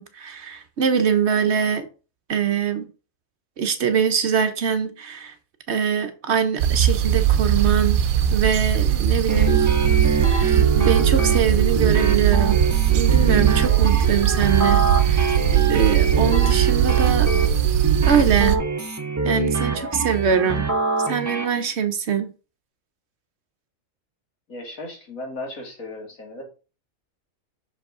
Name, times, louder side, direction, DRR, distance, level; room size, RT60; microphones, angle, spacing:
voice 1, 0.0-1.9 2.3-2.9 3.6-5.3 5.7-8.0 8.3-9.6 10.2-12.6 12.9-15.3 15.7-17.3 18.1-18.6 19.2-20.7 21.1-22.3, right 7 dB, 60° right, 0.9 m, -23 dB
sound 1, 6.6-18.6, right 10 dB, 85° right, 1.1 m, -19 dB
sound 2, 9.3-21.4, right 4 dB, 15° right, 0.7 m, -24 dB
voice 2, 24.5-26.4, left 2 dB, 80° left, 2.5 m, -36 dB
6.1 x 5.1 x 3.6 m
omnidirectional pair, 1.4 m